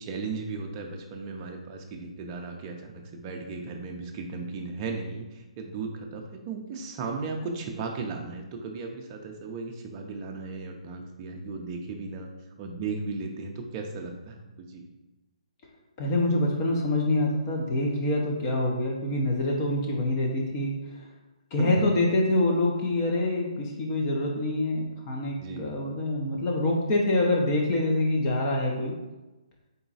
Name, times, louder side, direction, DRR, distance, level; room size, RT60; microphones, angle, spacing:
voice 1, 0.0-12.3 12.6-14.9 21.6-21.8 25.4-25.7, right 4 dB, 25° right, 2 dB, 0.5 m, -36 dB
voice 2, 16.0-20.7 21.5-28.9, left 1 dB, 30° left, -1 dB, 0.8 m, -26 dB
3.9 x 2.3 x 4.0 m, 1.1 s
hypercardioid pair, 155°, 4 cm